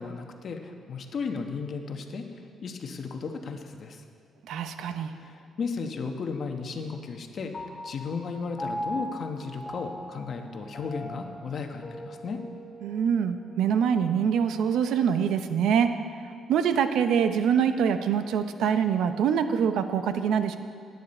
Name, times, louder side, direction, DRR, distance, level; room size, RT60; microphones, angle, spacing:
voice 1, 0.0-2.2 2.6-4.0 5.1-12.4, left 5 dB, 50° left, 4 dB, 1.1 m, -35 dB
voice 2, 4.5-5.1 12.8-15.9 16.5-20.6, right 7 dB, 85° right, 9 dB, 0.7 m, -24 dB
Piano, 7.5-14.2, equal, 35° left, 2.0 m, -40 dB
16.5 x 9.5 x 4.3 m, 2.2 s
cardioid pair, 125°, 0 cm